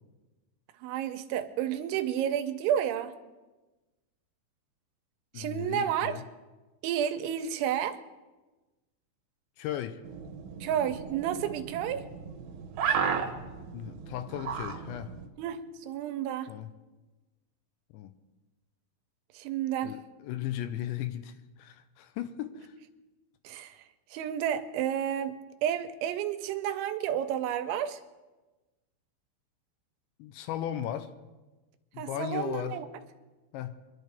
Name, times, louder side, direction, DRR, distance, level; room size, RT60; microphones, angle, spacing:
voice 1, 0.8-3.1 5.4-6.1 6.8-8.0 10.6-12.1 15.4-16.5 19.3-20.0 23.4-23.8 24.1-28.0 32.0-32.9, right 10 dB, 85° right, 9 dB, 3.1 m, -31 dB
voice 2, 5.3-6.2 9.6-10.0 13.7-15.2 16.5-16.7 17.9-18.1 19.8-22.7 30.2-31.2 31.9-32.8 33.5-33.8, left 11 dB, 85° left, 10 dB, 2.9 m, -36 dB
sound 1, 10.0-15.3, right 7 dB, 65° right, 2.4 m, -35 dB
24.5 x 11.0 x 3.4 m, 1.2 s
omnidirectional pair, 5.3 m